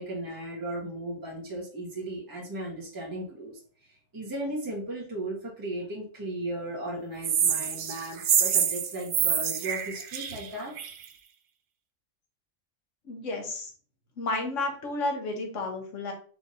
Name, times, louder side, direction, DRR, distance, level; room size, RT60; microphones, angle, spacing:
voice 1, 0.0-3.6 3.9-10.8, right 1 dB, 15° right, -4 dB, 1.3 m, -36 dB
sound 1, 7.2-11.0, right 8 dB, 60° right, 0.6 m, -26 dB
voice 2, 13.1-13.7 14.2-16.1, left 2 dB, 75° left, 2 dB, 1.4 m, -31 dB
4.8 x 3.4 x 2.6 m, 0.43 s
omnidirectional pair, 1.3 m